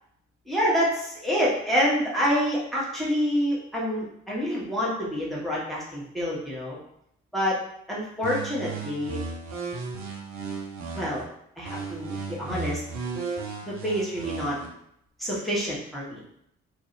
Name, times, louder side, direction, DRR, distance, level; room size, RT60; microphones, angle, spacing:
voice 1, 0.5-6.8 7.3-7.6 7.9-9.2 10.9-11.2 11.6-12.8 13.6-14.6 15.2-16.2, equal, ahead, -6 dB, 1.0 m, -27 dB
sound 1, 8.2-11.2 11.6-14.7, right 4 dB, 50° right, 0.6 m, -35 dB
2.6 x 2.1 x 2.6 m, 0.74 s
figure-of-eight pair, 40°, 36 cm